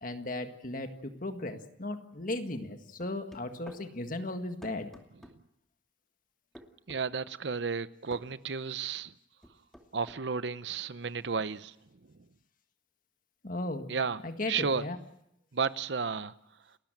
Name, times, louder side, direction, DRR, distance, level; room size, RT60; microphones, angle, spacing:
voice 1, 0.0-4.9 13.4-13.9 14.2-15.0, left 2 dB, 50° left, 1.8 m, -36 dB
sound 1, 3.0-3.8 4.6-5.4 6.6-7.0 8.1-8.3 9.4-10.2, equal, ahead, 2.6 m, -50 dB
voice 2, 6.9-9.1 9.9-11.7 13.9-14.2 14.5-14.8 15.5-16.3, right 5 dB, 70° right, 0.8 m, -32 dB
30.0 x 13.5 x 9.1 m
head